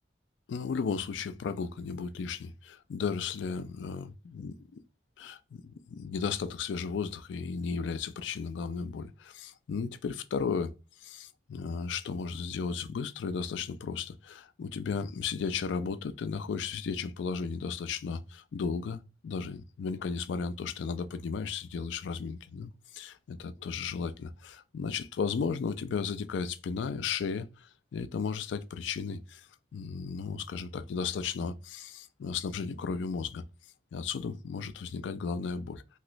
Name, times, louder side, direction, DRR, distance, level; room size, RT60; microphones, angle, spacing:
voice 1, 0.5-4.5 5.2-10.7 11.0-33.4 33.9-35.8, left 5 dB, 80° left, 0.3 m, -35 dB
3.2 x 2.9 x 2.5 m
head